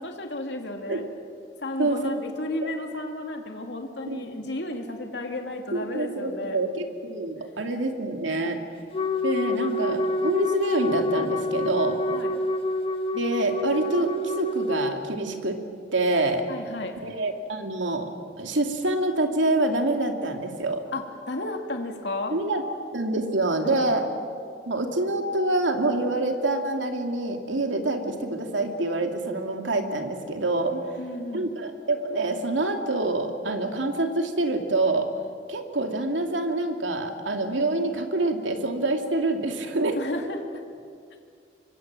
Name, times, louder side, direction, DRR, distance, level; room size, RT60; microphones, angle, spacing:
voice 1, 0.0-1.0 1.6-6.6 12.1-12.3 16.5-17.0 20.9-22.3 23.6-24.2 30.7-31.5 40.0-40.4, left 2 dB, 65° left, 3 dB, 2.6 m, -33 dB
voice 2, 1.8-2.1 2.6-2.7 4.1-4.2 5.7-8.6 9.2-12.0 13.1-15.6 15.9-16.4 17.0-18.1 18.4-20.8 22.3-22.6 22.9-24.0 24.7-30.7 31.3-35.1 35.5-40.0, right 2 dB, 90° right, 4 dB, 2.7 m, -26 dB
Wind instrument woodwind instrument, 8.9-15.0, left 2 dB, 30° left, 1.3 m, -27 dB
26.0 x 24.0 x 7.7 m, 2.3 s
head